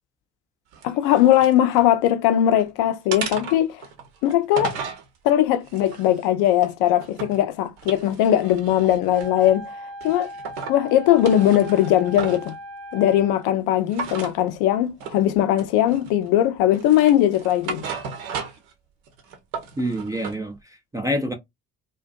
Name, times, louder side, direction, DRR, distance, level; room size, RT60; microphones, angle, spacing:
sound 1, 0.7-1.9 2.3-2.7 3.1-5.0 5.6-7.4 7.8-9.6 10.0-10.8 11.1-12.5 13.9-14.4 15.0-15.2 15.6-16.3 16.7-18.7 19.1-20.4, right 5 dB, 70° right, 0.7 m, -35 dB
voice 1, 0.8-3.8 4.2-4.8 5.2-9.7 10.0-10.3 10.7-12.6 12.9-17.8, left 12 dB, 60° left, 0.6 m, -19 dB
Wind instrument woodwind instrument, 9.1-13.5, equal, 30° right, 0.8 m, -38 dB
voice 2, 19.8-21.3, equal, 10° right, 0.3 m, -27 dB
2.5 x 2.2 x 2.3 m
figure-of-eight pair, 45°, 45 cm